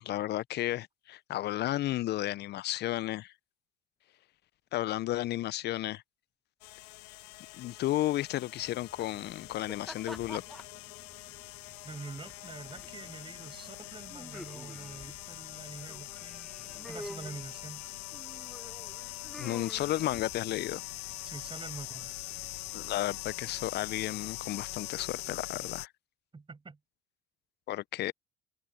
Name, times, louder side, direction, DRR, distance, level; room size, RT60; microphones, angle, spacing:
voice 1, 0.0-3.3 4.7-6.0 7.6-10.4 19.4-20.8 22.7-25.9 27.7-28.1, left 15 dB, 55° left, 1.0 m, -33 dB
sound 1, 6.6-25.9, left 24 dB, 75° left, 0.7 m, -43 dB
sound 2, 8.6-24.2, equal, ahead, 0.9 m, -51 dB
voice 2, 11.8-16.5 16.9-17.8 21.2-22.1 26.3-26.8, right 4 dB, 25° right, 6.1 m, -46 dB
hypercardioid pair, 60°, 20 cm